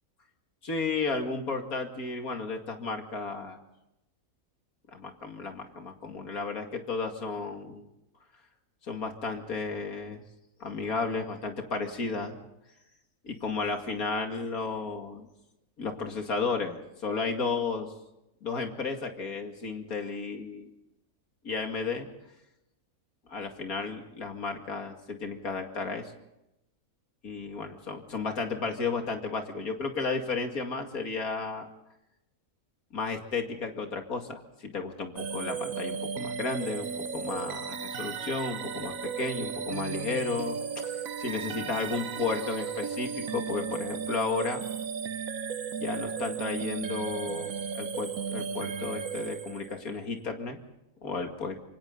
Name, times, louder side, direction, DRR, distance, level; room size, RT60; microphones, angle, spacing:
voice 1, 0.6-3.6 4.9-7.8 8.8-10.2 10.6-12.4 13.2-15.3 15.8-17.9 18.4-20.7 21.4-22.1 23.3-26.1 27.2-31.7 32.9-44.6 45.8-47.5 47.7-50.6 51.0-51.6, left 4 dB, 75° left, 4 dB, 2.7 m, -33 dB
sound 1, 35.2-49.9, right 6 dB, 70° right, 1.4 m, -35 dB
26.5 x 24.5 x 4.0 m, 0.89 s
omnidirectional pair, 1.5 m